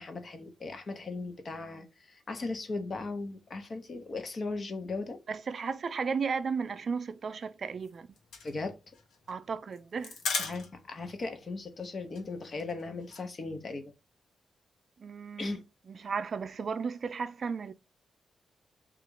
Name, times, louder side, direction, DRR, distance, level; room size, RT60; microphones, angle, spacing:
voice 1, 0.0-5.2 8.4-8.7 10.3-13.9 15.4-15.6, left 3 dB, 40° left, 0.8 m, -37 dB
voice 2, 5.3-8.1 9.3-10.2 15.0-15.6 15.9-17.7, right 5 dB, 50° right, 0.4 m, -34 dB
sound 1, 7.7-11.0 11.3-11.4 11.7-11.9 12.2-13.3, left 5 dB, 85° left, 0.9 m, -37 dB
3.8 x 2.5 x 4.6 m
wide cardioid pair, 125°, 0 cm